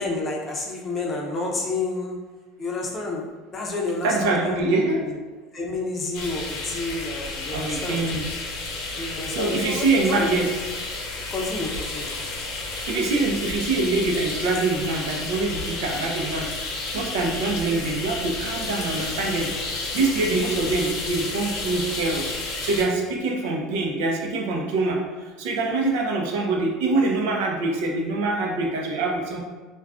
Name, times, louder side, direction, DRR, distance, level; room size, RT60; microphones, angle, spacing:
voice 1, 0.0-2.2 2.6-3.2 3.5-5.2 5.5-8.0 9.0-10.3 11.3-12.1, left 3 dB, 30° left, -1 dB, 0.6 m, -29 dB
voice 2, 4.0-5.0 7.5-8.3 9.3-10.5 12.9-16.5 16.9-29.4, right 3 dB, 80° right, 0 dB, 0.5 m, -25 dB
sound 1, 6.1-22.8, left 3 dB, 70° left, 0.7 m, -31 dB
2.3 x 2.2 x 3.5 m, 1.3 s
supercardioid pair, 125°, 0 cm